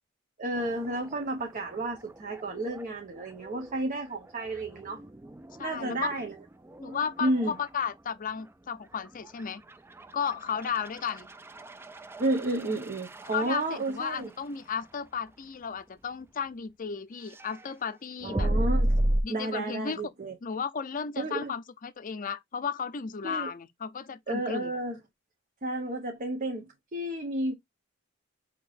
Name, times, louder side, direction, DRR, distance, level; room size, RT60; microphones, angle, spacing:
voice 1, 0.4-5.0 5.6-6.4 7.2-7.6 12.2-14.3 18.2-18.9 19.3-20.3 21.2-21.5 23.2-23.5 24.3-25.0 25.6-27.5, right 2 dB, 40° right, 0.9 m, -31 dB
sound 1, 0.5-16.6 17.1-19.2, right 1 dB, 10° right, 0.3 m, -36 dB
voice 2, 5.6-6.2 6.8-9.6 10.1-11.3 13.3-18.5 19.2-20.0 20.4-24.7, left 6 dB, 45° left, 0.5 m, -34 dB
5.9 x 2.9 x 2.5 m
head